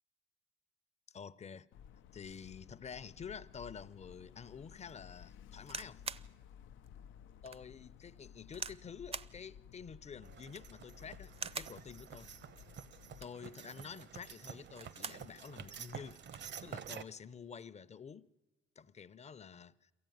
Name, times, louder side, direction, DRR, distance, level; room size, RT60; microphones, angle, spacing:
voice 1, 1.1-1.7 2.1-6.0 7.4-12.3 13.2-16.2 16.6-18.3 18.8-19.9, left 6 dB, 35° left, 0.7 m, -49 dB
sound 1, 1.7-13.3, left 9 dB, 80° left, 0.6 m, -56 dB
sound 2, 5.7-6.3 6.9-7.0 7.5-7.6 8.5-8.8 9.1-9.4 10.4-10.8 11.3-11.8 13.0-13.5 14.6-15.3 15.7-15.8 16.0-16.5 17.4-17.6, right 5 dB, 30° right, 0.6 m, -44 dB
sound 3, 10.2-17.0, right 7 dB, 65° right, 0.9 m, -50 dB
23.0 x 15.0 x 9.3 m
cardioid pair, 90°, 20 cm